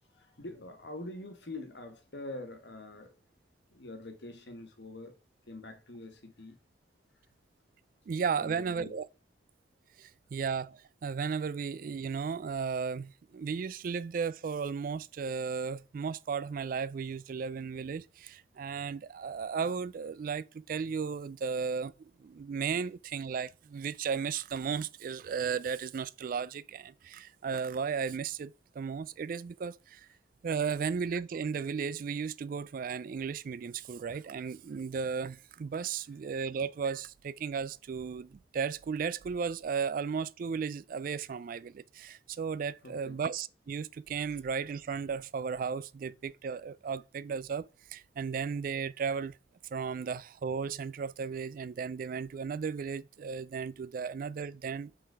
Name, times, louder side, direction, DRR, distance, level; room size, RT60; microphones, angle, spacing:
voice 1, 0.1-3.1 3.7-5.1 5.5-6.6 8.4-8.9 42.8-43.2, left 2 dB, 65° left, 1.3 m, -44 dB
voice 2, 8.1-9.1 10.0-30.1 30.4-49.4 49.7-54.9, right 6 dB, 50° right, 0.3 m, -35 dB
6.7 x 3.9 x 4.7 m
head